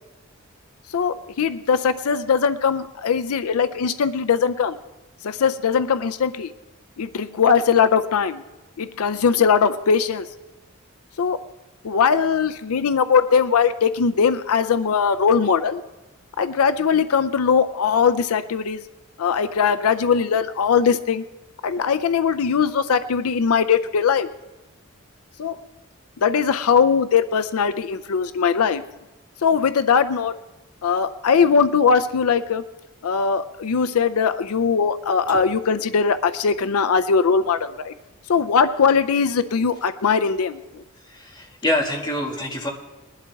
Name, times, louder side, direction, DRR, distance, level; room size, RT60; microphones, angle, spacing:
voice 1, 0.9-4.8 5.2-6.5 7.0-8.4 8.8-10.3 11.2-11.4 11.8-15.8 16.4-18.8 19.2-21.2 21.6-24.3 25.4-25.6 26.2-28.8 29.4-30.3 30.8-32.6 33.0-37.9 38.3-40.8, left 6 dB, 85° left, 12 dB, 0.5 m, -20 dB
voice 2, 41.0-42.7, left 1 dB, 20° left, -3 dB, 1.9 m, -26 dB
20.5 x 11.5 x 3.5 m, 1.1 s
head